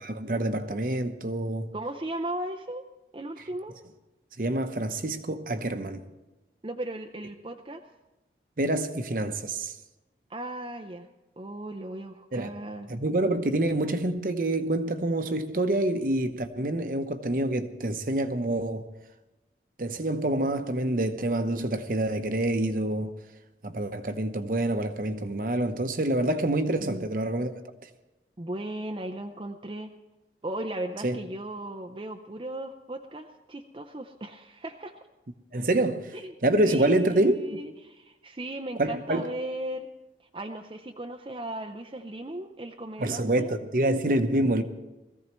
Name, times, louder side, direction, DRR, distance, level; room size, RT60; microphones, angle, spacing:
voice 1, 0.0-1.7 4.4-6.0 8.6-9.7 12.3-12.5 12.9-18.9 19.8-23.1 23.6-27.6 31.0-31.2 35.5-36.1 36.4-37.6 38.8-39.2 43.0-44.6, right 1 dB, 50° right, 0.8 m, -27 dB
voice 2, 1.7-2.9 3.1-3.8 6.6-7.8 10.3-11.1 11.4-12.9 26.8-27.1 28.4-29.9 30.4-34.9 36.1-36.3 36.6-39.9 40.3-43.6, right 1 dB, 30° right, 0.5 m, -37 dB
21.0 x 15.0 x 3.1 m
head